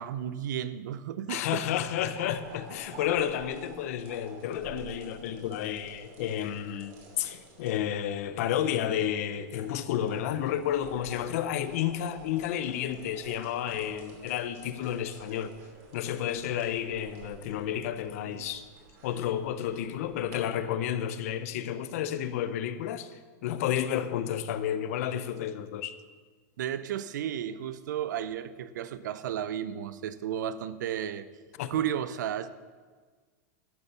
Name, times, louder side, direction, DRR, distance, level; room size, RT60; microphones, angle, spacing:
voice 1, 0.0-1.6 18.2-18.4 26.6-31.3 31.7-32.5, right 10 dB, 85° right, 14 dB, 0.7 m, -33 dB
voice 2, 1.3-15.5 15.9-18.6 19.0-25.9 31.6-31.7, left 10 dB, 55° left, 12 dB, 0.7 m, -31 dB
sound 1, 1.4-20.3, right 3 dB, 45° right, 2.8 m, -50 dB
12.0 x 6.9 x 6.8 m, 1.5 s
supercardioid pair, 170°, 10 cm